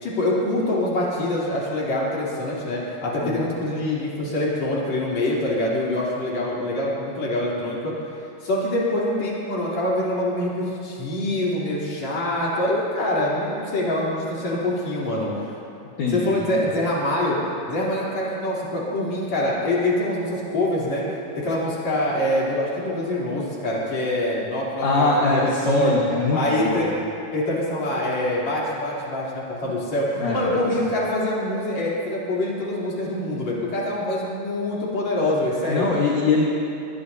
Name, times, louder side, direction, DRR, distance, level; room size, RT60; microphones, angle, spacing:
voice 1, 0.0-7.9 8.4-15.5 16.1-17.4 17.7-21.0 21.4-25.9 26.3-26.9 27.3-35.9, left 1 dB, 35° left, -6 dB, 4.1 m, -25 dB
voice 2, 16.0-16.7 24.8-26.8 30.2-30.6 35.7-36.5, left 3 dB, 70° left, -4 dB, 1.9 m, -22 dB
23.0 x 20.5 x 2.8 m, 2.7 s
omnidirectional pair, 5.9 m